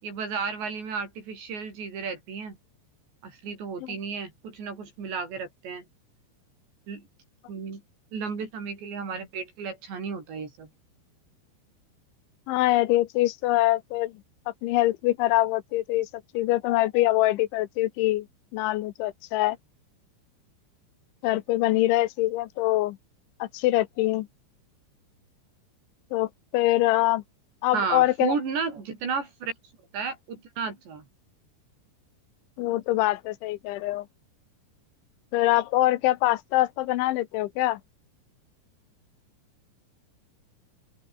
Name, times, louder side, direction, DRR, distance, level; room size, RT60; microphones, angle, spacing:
voice 1, 0.0-2.6 3.2-5.9 6.9-7.1 7.5-7.8 8.1-10.7 27.7-29.5 29.9-31.0, right 5 dB, 65° right, 8.4 m, -33 dB
voice 2, 12.5-14.1 14.6-16.1 16.3-18.3 18.5-19.6 21.2-23.0 23.4-24.3 26.1-27.2 27.6-28.3 32.6-34.1 35.3-37.8, left 16 dB, 80° left, 3.3 m, -24 dB
open air
omnidirectional pair, 5.4 m